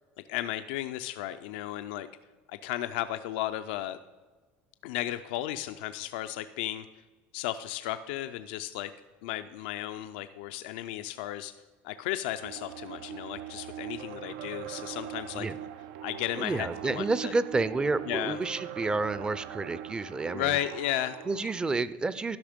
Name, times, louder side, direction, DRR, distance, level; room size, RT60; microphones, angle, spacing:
voice 1, 0.3-2.1 2.5-4.0 4.8-6.9 7.3-8.9 9.2-11.5 11.8-15.5 16.0-17.3 18.1-18.4 20.3-21.2, left 13 dB, 90° left, 10 dB, 0.4 m, -34 dB
sound 1, 12.4-21.7, right 11 dB, 80° right, 0.4 m, -42 dB
voice 2, 16.4-20.6 21.3-22.4, right 3 dB, 15° right, 16 dB, 0.4 m, -30 dB
12.0 x 5.6 x 5.1 m, 1.3 s
cardioid pair, 120°, 5 cm